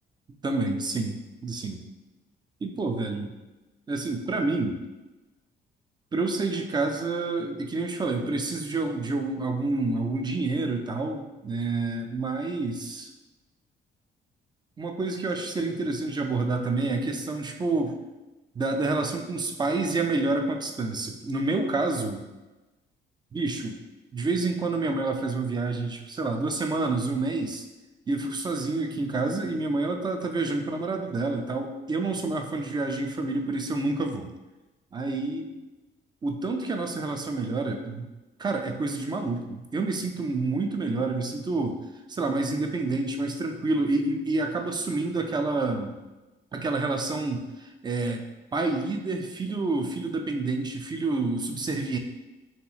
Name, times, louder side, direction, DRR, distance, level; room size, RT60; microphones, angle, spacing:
voice 1, 0.4-1.2 1.4-1.8 2.6-3.3 3.9-4.8 6.1-13.1 14.8-18.0 18.6-22.2 23.3-23.8 24.1-27.7 28.1-34.3 34.9-35.4 36.2-38.1 38.4-41.8 42.1-45.9 46.5-48.2 48.5-52.0, right 3 dB, 20° right, 4 dB, 0.4 m, -28 dB
3.0 x 2.8 x 2.4 m, 1.1 s
cardioid pair, 90°, 20 cm